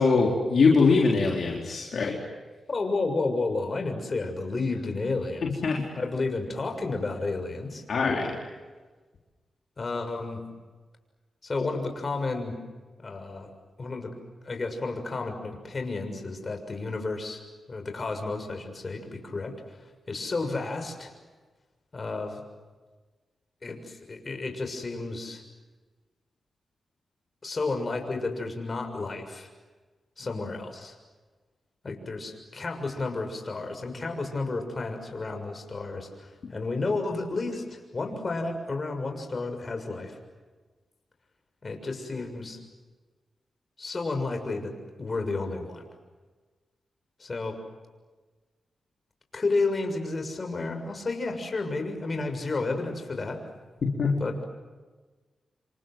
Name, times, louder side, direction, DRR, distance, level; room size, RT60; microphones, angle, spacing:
voice 1, 0.0-2.2 5.4-5.9 7.9-8.4 53.8-54.2, left 4 dB, 70° left, -2 dB, 4.1 m, -23 dB
voice 2, 2.7-5.5 6.0-7.8 9.8-10.4 11.4-12.6 13.0-13.5 13.8-14.1 14.4-17.4 17.7-19.5 20.1-21.1 21.9-22.4 23.6-25.4 27.4-29.5 30.2-30.9 31.8-40.2 41.6-42.6 43.8-44.7 45.0-45.8 47.2-47.6 49.3-53.4 54.2-54.4, left 3 dB, 45° left, 5 dB, 6.7 m, -31 dB
28.0 x 27.0 x 7.8 m, 1.3 s
cardioid pair, 55°, 0 cm